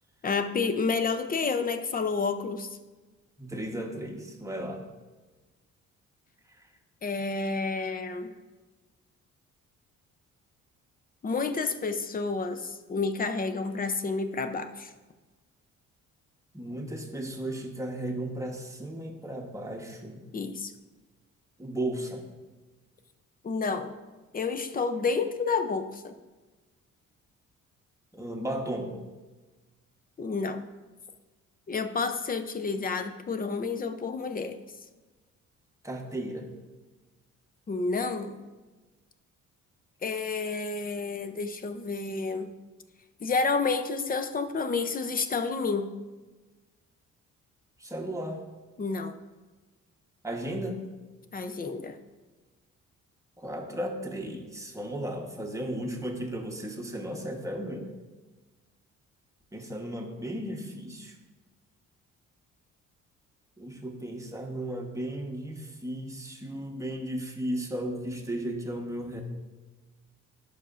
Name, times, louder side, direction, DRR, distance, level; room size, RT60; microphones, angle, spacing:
voice 1, 0.2-2.7 7.0-8.3 11.2-14.9 20.3-20.7 23.4-23.9 24.3-26.1 30.2-30.7 31.7-34.6 37.7-38.4 40.0-42.6 43.2-45.9 48.8-49.2 51.3-52.0, left 4 dB, 30° left, 9 dB, 0.6 m, -30 dB
voice 2, 3.4-4.8 16.5-20.2 21.6-22.2 28.1-28.9 35.8-36.5 47.8-48.4 50.2-50.8 53.4-57.9 59.5-61.1 63.6-69.2, right 1 dB, 10° right, 2 dB, 1.1 m, -35 dB
11.5 x 5.7 x 2.5 m, 1.2 s
cardioid pair, 90°, 30 cm